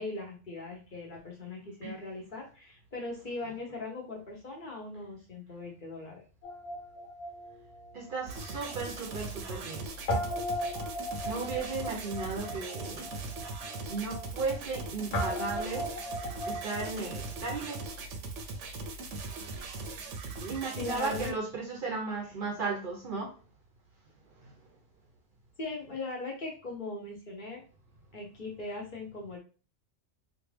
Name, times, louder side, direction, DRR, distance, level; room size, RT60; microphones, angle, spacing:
voice 1, 0.0-6.2 20.8-21.3 25.6-27.6 28.1-29.4, left 3 dB, 45° left, 1.1 m, -39 dB
Guitar, 6.4-8.8 9.1-9.2 10.1-17.9, left 1 dB, 90° left, 1.3 m, -37 dB
voice 2, 7.9-9.9 11.2-13.1 13.9-15.9 16.5-17.8 20.4-23.4 24.4-24.5, right 4 dB, 55° right, 0.7 m, -35 dB
sound 1, 8.3-21.3, right 3 dB, 80° right, 0.9 m, -40 dB
3.1 x 2.5 x 3.3 m
omnidirectional pair, 1.2 m